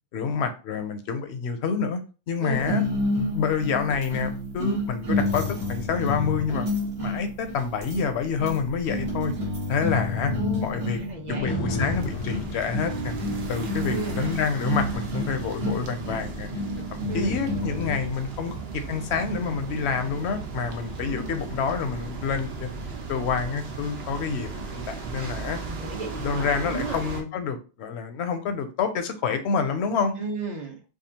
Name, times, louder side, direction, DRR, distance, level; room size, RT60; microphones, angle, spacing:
voice 1, 0.1-2.0 2.3-2.8 3.3-5.4 5.7-6.7 7.0-9.3 9.7-10.3 10.6-11.0 11.3-13.2 13.5-16.5 16.9-22.7 23.1-25.6 26.2-30.2, left 6 dB, 80° left, 8 dB, 0.9 m, -28 dB
sound 1, 2.6-18.1, left 1 dB, 85° right, 1.7 m, -30 dB
voice 2, 10.2-11.6 13.9-14.3 17.1-17.4 21.0-21.4 25.6-27.0 30.2-30.8, right 3 dB, 45° right, 1 dB, 0.9 m, -34 dB
sound 2, 11.5-19.6 20.1-20.2, left 1 dB, 35° left, 0.5 m, -37 dB
sound 3, 11.8-27.2, right 4 dB, 70° right, 1.0 m, -36 dB
4.9 x 2.3 x 2.8 m, 0.33 s
omnidirectional pair, 1.1 m